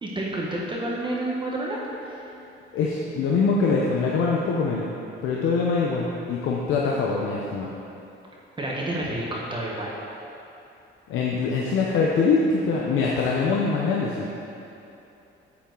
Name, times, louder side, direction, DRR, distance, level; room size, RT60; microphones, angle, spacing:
voice 1, 0.0-2.2 8.6-10.0, right 1 dB, 25° right, -4 dB, 1.2 m, -29 dB
voice 2, 2.7-4.9 5.2-7.7 11.1-14.3, left 4 dB, 80° left, -3 dB, 0.9 m, -23 dB
9.3 x 7.3 x 4.0 m, 2.8 s
cardioid pair, 125°, 20 cm